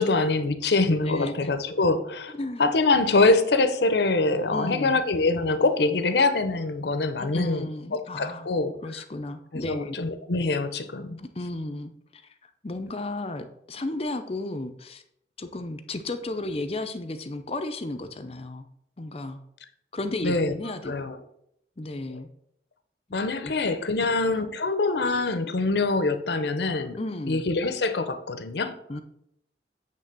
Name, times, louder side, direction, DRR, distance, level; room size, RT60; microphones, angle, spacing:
voice 1, 0.0-7.6 7.9-8.7 9.5-11.2 20.2-20.5 20.9-21.2 23.1-27.0 27.3-28.7, left 3 dB, 70° left, 10 dB, 0.7 m, -24 dB
voice 2, 1.0-1.5 2.3-2.7 4.5-5.0 7.2-8.5 8.8-10.0 11.2-15.0 15.4-18.7 19.0-19.4 19.9-20.9 21.8-22.3 23.3-23.5 26.9-27.5 28.9-29.0, left 2 dB, 35° left, 8 dB, 0.5 m, -34 dB
8.7 x 3.4 x 6.7 m, 0.75 s
head